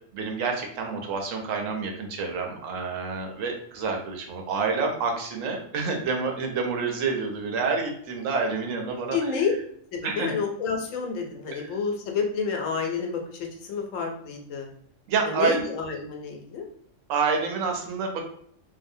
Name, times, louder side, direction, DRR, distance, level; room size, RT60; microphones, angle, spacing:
voice 1, 0.1-9.2 10.0-10.3 11.5-11.7 15.1-15.6 17.1-18.2, right 4 dB, 80° right, 2 dB, 1.0 m, -28 dB
voice 2, 9.1-9.5 9.9-14.7 15.2-16.7, left 5 dB, 80° left, 2 dB, 1.0 m, -29 dB
2.6 x 2.0 x 2.6 m, 0.66 s
omnidirectional pair, 1.3 m